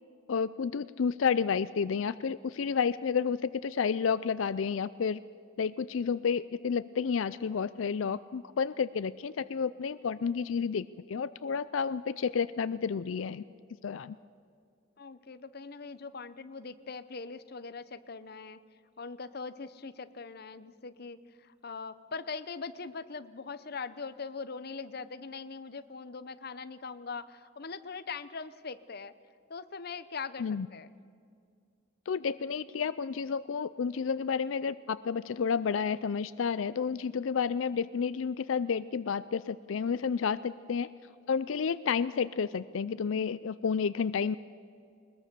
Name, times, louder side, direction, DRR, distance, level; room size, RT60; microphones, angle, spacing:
voice 1, 0.3-5.2 5.6-13.4 13.8-14.2 30.4-30.7 32.1-40.9 41.3-44.4, left 6 dB, 85° left, 16 dB, 0.4 m, -31 dB
voice 2, 15.0-18.6 19.0-29.1 29.5-30.9, left 4 dB, 55° left, 13 dB, 0.8 m, -41 dB
21.0 x 20.5 x 6.8 m, 2.3 s
head